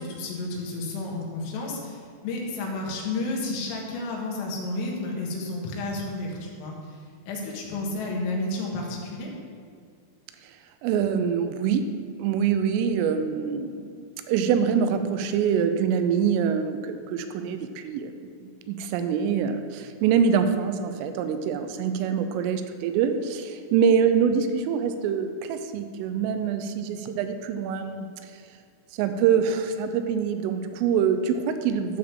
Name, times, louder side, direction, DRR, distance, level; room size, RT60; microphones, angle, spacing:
voice 1, 0.0-6.8 7.3-9.3, left 2 dB, 90° left, -2 dB, 4.2 m, -31 dB
voice 2, 10.8-11.8 12.2-28.3 28.9-32.0, right 7 dB, 90° right, 8 dB, 3.2 m, -25 dB
14.5 x 7.0 x 3.7 m, 2.2 s
omnidirectional pair, 5.7 m